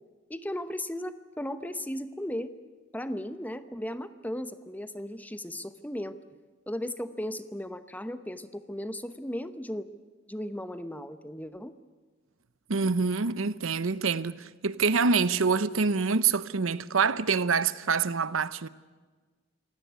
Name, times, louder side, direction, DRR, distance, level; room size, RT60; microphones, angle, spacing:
voice 1, 0.3-2.5 2.9-6.2 6.7-9.9 10.3-11.7, left 1 dB, 10° left, 0.9 m, -36 dB
voice 2, 12.7-18.7, right 5 dB, 85° right, 0.8 m, -26 dB
25.5 x 17.0 x 9.4 m
head